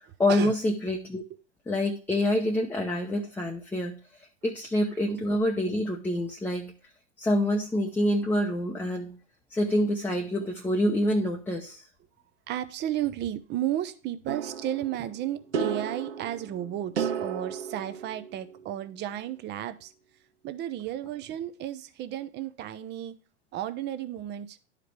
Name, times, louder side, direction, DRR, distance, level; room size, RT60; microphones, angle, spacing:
voice 1, 0.2-1.2 1.7-4.0 4.4-6.7 7.2-9.2 9.5-11.8, left 1 dB, 5° left, 1 dB, 0.8 m, -26 dB
voice 2, 12.5-19.9 20.4-23.1 23.5-24.6, right 12 dB, 30° right, 11 dB, 0.7 m, -33 dB
sound 1, 14.3-18.8, right 6 dB, 80° right, 1.4 m, -34 dB
11.0 x 5.0 x 3.2 m, 0.39 s
hypercardioid pair, 110°, 34 cm